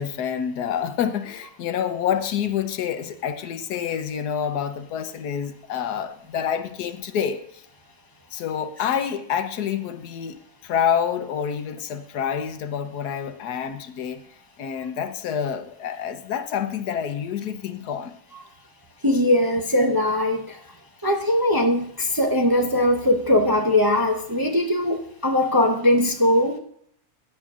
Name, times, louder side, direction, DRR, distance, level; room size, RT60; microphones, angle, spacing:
voice 1, 0.0-7.6 8.3-14.2 14.6-18.1, left 8 dB, 85° left, 1.3 m, -27 dB
voice 2, 19.0-20.6 21.0-26.6, left 1 dB, 20° right, 0.6 m, -20 dB
15.0 x 10.0 x 2.5 m
omnidirectional pair, 1.7 m